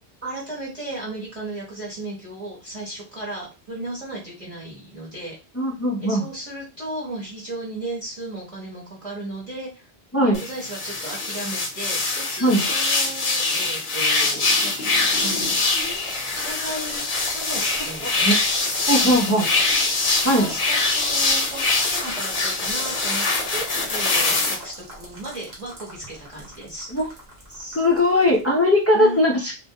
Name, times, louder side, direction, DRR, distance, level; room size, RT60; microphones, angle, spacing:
voice 1, 0.2-5.3 6.0-9.9 10.2-14.9 15.2-15.7 16.3-18.3 19.0-19.5 20.0-26.9 28.9-29.2, right 1 dB, 35° right, -6 dB, 1.0 m, -35 dB
voice 2, 5.5-6.3 10.1-10.4 12.4-12.6 18.0-18.4 18.9-19.5 20.2-20.5 26.9-27.1 27.5-29.6, left 1 dB, 25° left, -3 dB, 0.3 m, -19 dB
sound 1, 10.3-24.5, left 3 dB, 60° left, 0.7 m, -23 dB
sound 2, 14.9-28.4, right 1 dB, 70° right, 1.1 m, -40 dB
2.2 x 2.1 x 2.7 m, 0.29 s
omnidirectional pair, 1.0 m